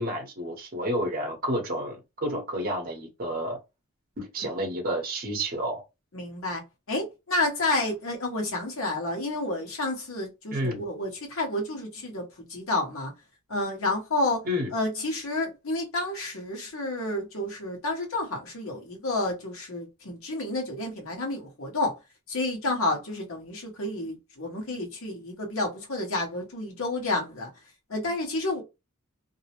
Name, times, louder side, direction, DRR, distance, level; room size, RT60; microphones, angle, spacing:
voice 1, 0.0-3.6 4.2-5.8 10.5-10.8 14.4-14.7, equal, 45° right, 0.8 m, -30 dB
voice 2, 4.4-4.7 6.1-6.6 6.9-13.1 13.5-14.4 14.7-21.9 22.3-27.5 27.9-28.6, left 2 dB, 70° left, 1.1 m, -30 dB
2.6 x 2.0 x 2.9 m
head